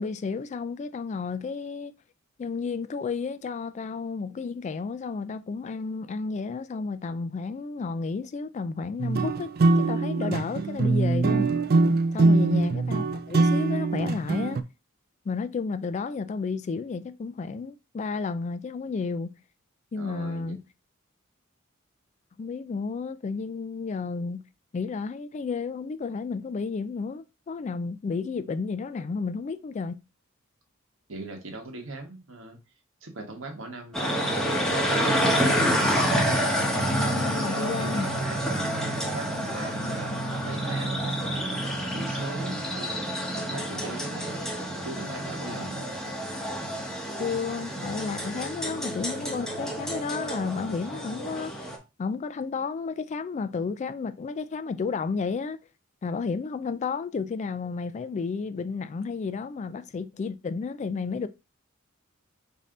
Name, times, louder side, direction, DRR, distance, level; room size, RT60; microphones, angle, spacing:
voice 1, 0.0-1.9 2.4-11.5 12.1-14.6 15.3-19.3 19.9-20.6 22.4-24.4 24.7-30.0 36.8-38.1 47.2-51.7 52.0-55.6 56.0-61.3, left 4 dB, 35° left, 0.3 m, -32 dB
sound 1, 9.0-14.6, right 3 dB, 50° right, 0.4 m, -23 dB
voice 2, 12.3-12.6 20.0-20.6 31.1-32.6 33.0-35.5 37.2-45.9, right 2 dB, 70° right, 1.3 m, -41 dB
sound 2, 33.9-51.8, equal, 5° left, 1.0 m, -28 dB
5.2 x 2.7 x 3.7 m
head